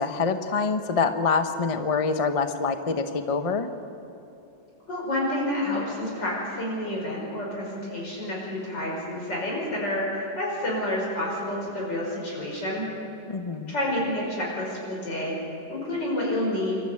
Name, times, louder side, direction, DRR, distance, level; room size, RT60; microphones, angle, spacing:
voice 1, 0.0-3.7 13.3-13.7, left 4 dB, 30° left, 8 dB, 0.6 m, -25 dB
voice 2, 4.9-12.9 13.7-15.4 15.7-16.8, left 1 dB, 70° left, -3 dB, 6.0 m, -29 dB
27.0 x 13.0 x 8.5 m, 2.9 s
omnidirectional pair, 2.0 m